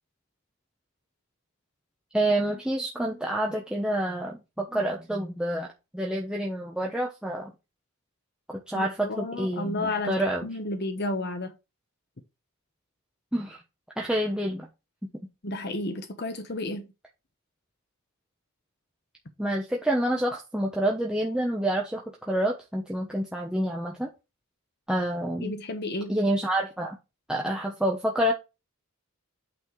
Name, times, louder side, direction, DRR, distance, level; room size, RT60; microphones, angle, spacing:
voice 1, 2.1-7.5 8.5-10.5 13.3-13.6 14.0-14.7 19.4-24.1 24.9-25.5 26.1-27.0 27.3-28.3, right 1 dB, 5° right, 1.0 m, -28 dB
voice 2, 8.7-11.5 15.4-16.9 25.4-26.1, left 2 dB, 50° left, 1.1 m, -32 dB
8.6 x 4.3 x 4.7 m
head